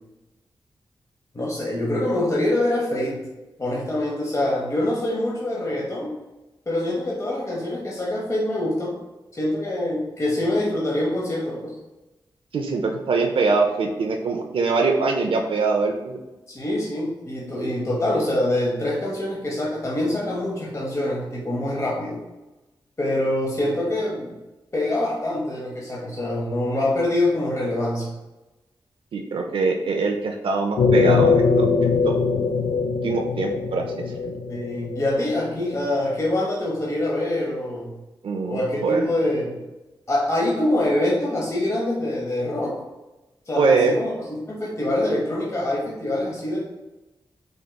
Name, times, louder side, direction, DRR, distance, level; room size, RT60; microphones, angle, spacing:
voice 1, 1.3-3.2 3.6-6.2 6.7-9.0 9.3-11.8 16.5-22.2 23.0-24.3 24.7-28.2 34.5-38.0 38.5-39.6 40.1-42.8 43.5-46.6, left 1 dB, 35° left, -5 dB, 1.0 m, -25 dB
voice 2, 12.5-16.2 29.1-32.2 33.0-33.8 34.2-34.4 38.2-39.1 43.6-44.0, right 4 dB, 80° right, 2 dB, 0.5 m, -23 dB
sound 1, 30.8-35.8, left 5 dB, 85° left, 0.4 m, -21 dB
5.1 x 3.0 x 2.2 m, 1.1 s
cardioid pair, 65°, 9 cm